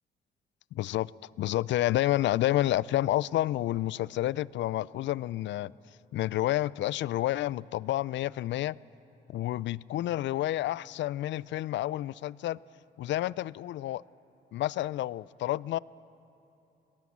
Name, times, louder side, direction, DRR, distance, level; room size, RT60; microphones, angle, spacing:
voice 1, 0.7-1.1 1.4-5.7 6.1-8.8 9.3-12.6 13.0-14.0 14.5-15.8, left 14 dB, 65° left, 22 dB, 0.4 m, -29 dB
22.0 x 18.5 x 7.3 m, 2.9 s
cardioid pair, 90°, 20 cm